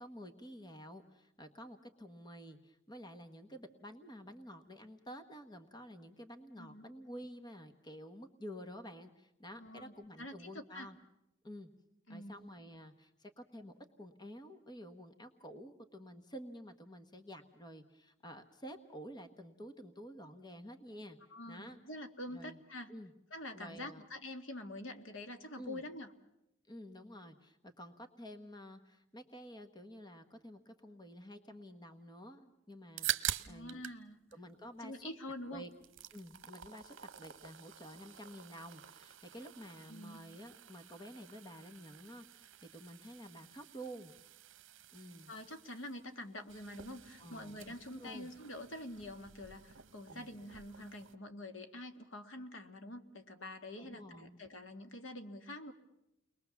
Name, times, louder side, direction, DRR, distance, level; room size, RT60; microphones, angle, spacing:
voice 1, 0.0-11.0 11.4-11.7 12.1-21.2 21.5-21.8 22.3-22.6 22.9-23.1 23.5-24.0 25.6-25.8 26.7-33.8 34.3-35.1 35.5-35.7 36.1-44.1 44.9-45.3 47.2-48.3 50.1-50.3 53.8-54.4, equal, 20° left, 8 dB, 1.3 m, -50 dB
voice 2, 9.6-10.9 12.1-12.4 21.3-22.9 23.3-26.1 33.4-34.2 34.8-35.6 39.9-40.2 45.3-55.7, left 1 dB, 70° left, 7 dB, 1.9 m, -46 dB
sound 1, 32.7-34.0 34.3-35.3 35.6-51.2, right 11 dB, 70° right, 1.0 m, -46 dB
30.0 x 21.5 x 7.1 m, 0.87 s
head